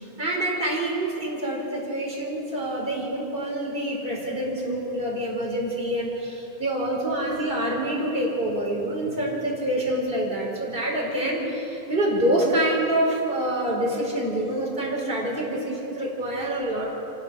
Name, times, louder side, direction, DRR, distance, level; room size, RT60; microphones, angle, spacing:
voice 1, 0.0-16.9, right 1 dB, 40° right, -3 dB, 4.5 m, -26 dB
27.5 x 16.0 x 6.9 m, 3.0 s
omnidirectional pair, 1.4 m